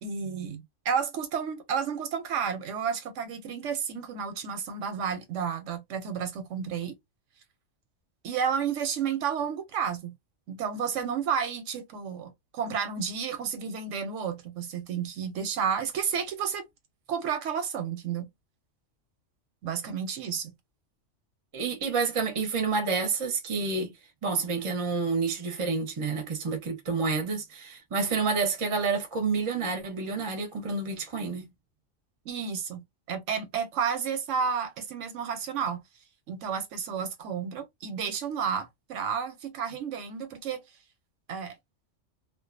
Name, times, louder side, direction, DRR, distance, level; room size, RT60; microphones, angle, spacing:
voice 1, 0.0-7.0 8.2-10.2 10.5-16.7 17.1-18.3 19.6-20.5 32.3-35.8 36.3-40.6 41.3-41.6, right 7 dB, 85° right, 1.0 m, -31 dB
voice 2, 21.5-23.9 24.2-31.5, right 4 dB, 35° right, 0.6 m, -29 dB
2.4 x 2.3 x 2.4 m
omnidirectional pair, 1.3 m